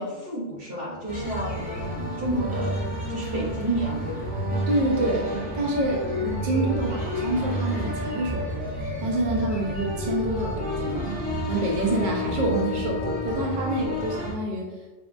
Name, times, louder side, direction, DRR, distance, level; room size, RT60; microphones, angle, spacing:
voice 1, 0.0-2.7 3.1-4.3, right 1 dB, 85° right, -6 dB, 1.7 m, -30 dB
sound 1, 1.1-14.3, equal, 10° right, 0.9 m, -30 dB
voice 2, 4.7-5.3 5.5-8.7 9.0-11.2 11.5-14.7, right 2 dB, 55° right, -1 dB, 0.7 m, -27 dB
5.0 x 2.3 x 2.4 m, 1.1 s
omnidirectional pair, 1.0 m